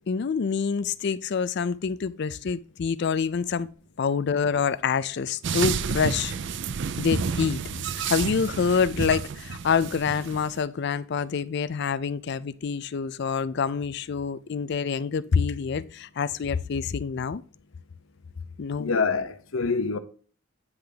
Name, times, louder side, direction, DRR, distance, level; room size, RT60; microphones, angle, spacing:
voice 1, 0.1-3.7 4.0-6.3 7.0-7.6 7.9-17.4 18.6-19.0, left 6 dB, 55° left, 0.4 m, -26 dB
sound 1, 5.4-10.6, right 6 dB, 60° right, 0.4 m, -30 dB
voice 2, 18.8-20.0, left 4 dB, 85° left, 0.9 m, -26 dB
9.6 x 3.4 x 5.0 m
head